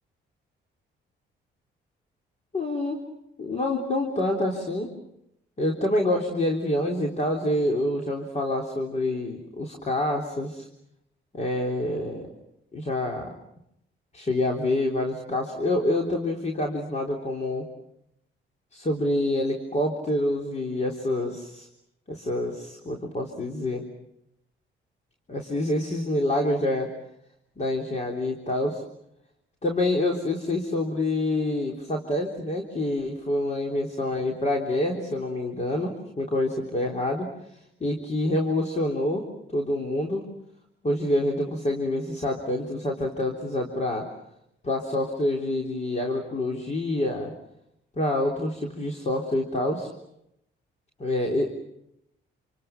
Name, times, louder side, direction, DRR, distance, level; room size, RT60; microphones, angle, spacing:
voice 1, 2.5-3.0 3.4-4.9 5.6-10.7 11.3-12.3 12.7-13.3 14.1-17.7 18.7-21.7 22.1-23.9 25.3-26.9 27.6-28.8 29.6-37.3 37.8-39.3 39.5-40.2 40.8-44.1 44.6-47.3 48.0-49.9 51.0-51.5, left 1 dB, 35° left, 1 dB, 3.7 m, -27 dB
28.5 x 28.0 x 6.0 m, 0.80 s
cardioid pair, 90°, 20 cm